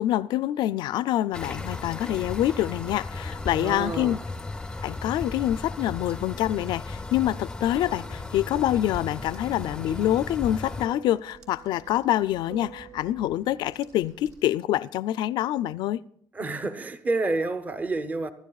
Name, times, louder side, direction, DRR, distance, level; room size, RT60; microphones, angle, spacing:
voice 1, 0.0-4.2 4.8-16.0, left 13 dB, 75° left, 0.4 m, -26 dB
sound 1, 1.3-10.9, left 3 dB, 10° left, 0.5 m, -36 dB
voice 2, 3.5-4.2 16.3-18.3, right 2 dB, 20° right, 0.7 m, -29 dB
sound 2, 7.4-14.3, right 7 dB, 65° right, 1.3 m, -49 dB
sound 3, 8.5-14.5, right 3 dB, 45° right, 4.0 m, -56 dB
23.0 x 12.0 x 2.3 m
cardioid pair, 125°, 8 cm